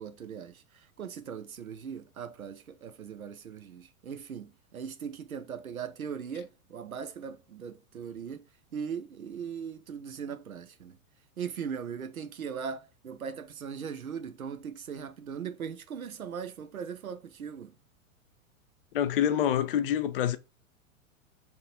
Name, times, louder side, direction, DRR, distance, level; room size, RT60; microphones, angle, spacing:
voice 1, 0.0-11.0 11.4-17.7, right 7 dB, 80° right, 0.7 m, -39 dB
voice 2, 18.9-20.4, left 10 dB, 45° left, 0.4 m, -26 dB
3.6 x 2.9 x 3.9 m
figure-of-eight pair, 95°, 41 cm